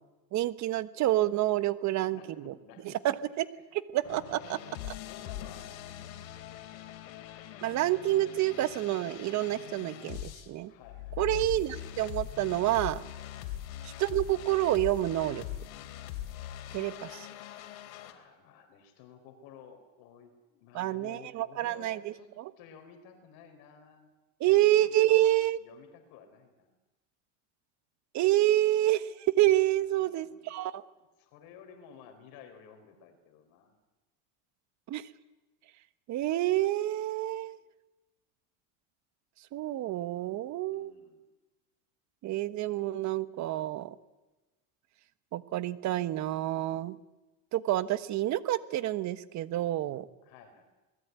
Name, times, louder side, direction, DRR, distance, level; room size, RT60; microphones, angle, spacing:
voice 1, 0.3-2.5 2.8-3.5 3.7-4.6 4.9-5.0 7.6-10.7 11.2-13.0 13.8-15.4 16.7-17.3 20.7-22.5 24.4-25.6 28.1-30.8 34.9-35.1 36.1-37.6 39.5-40.9 42.2-43.9 45.3-47.0 47.5-50.1, right 14 dB, 45° right, 14 dB, 1.4 m, -28 dB
voice 2, 2.1-3.3 4.9-5.9 10.6-11.2 13.3-13.5 17.9-24.1 24.4-26.8 29.8-30.6 31.2-33.8 40.7-41.2 50.2-50.6, left 7 dB, 60° left, 6 dB, 4.6 m, -54 dB
sound 1, 4.0-10.5 10.8-18.1, left 12 dB, 80° left, 3.9 m, -42 dB
27.5 x 20.0 x 9.6 m, 1.1 s
supercardioid pair, 140°, 40 cm